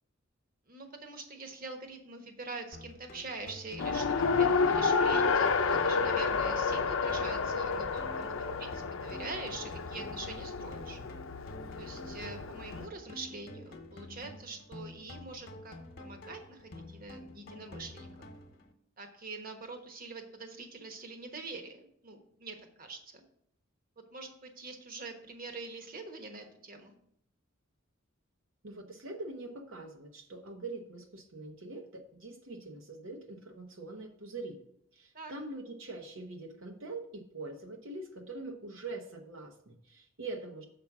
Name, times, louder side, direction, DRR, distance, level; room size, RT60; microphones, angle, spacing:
voice 1, 0.7-8.3 8.6-11.0 11.8-18.1 19.0-23.2 24.1-26.9 35.1-35.3, right 3 dB, 45° right, 5 dB, 1.2 m, -44 dB
sound 1, 2.7-18.7, left 1 dB, 55° left, 1.0 m, -49 dB
Race car auto racing, 3.8-12.9, left 5 dB, 90° left, 0.5 m, -30 dB
voice 2, 28.6-34.6 34.9-40.6, right 2 dB, 75° right, 2 dB, 0.9 m, -43 dB
7.0 x 5.1 x 5.9 m, 0.69 s
head